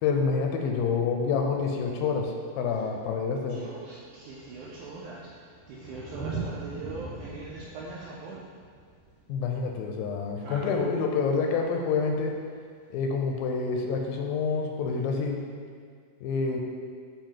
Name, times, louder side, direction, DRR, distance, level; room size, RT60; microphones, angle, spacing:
voice 1, 0.0-3.6 9.3-12.4 12.9-15.4 16.2-16.6, left 5 dB, 85° left, 2 dB, 2.3 m, -27 dB
Thunder, 2.9-3.0 3.2-10.5 12.2-12.3, right 4 dB, 50° right, 1.8 m, -41 dB
voice 2, 3.3-8.5 10.4-10.8, right 3 dB, 85° right, -5 dB, 1.7 m, -42 dB
7.0 x 2.7 x 5.7 m, 2.1 s
omnidirectional pair, 4.1 m